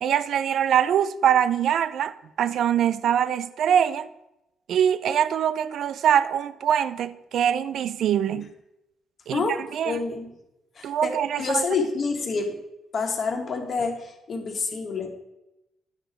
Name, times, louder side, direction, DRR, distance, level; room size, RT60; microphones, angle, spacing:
voice 1, 0.0-4.1 4.7-8.5 9.3-9.4 9.7-10.0 10.8-11.6, right 9 dB, 70° right, 0.4 m, -23 dB
voice 2, 9.8-10.3 10.8-11.1 11.4-12.6 12.9-15.1, left 4 dB, 50° left, 1.5 m, -27 dB
10.5 x 5.1 x 4.3 m
cardioid pair, 90°, 0 cm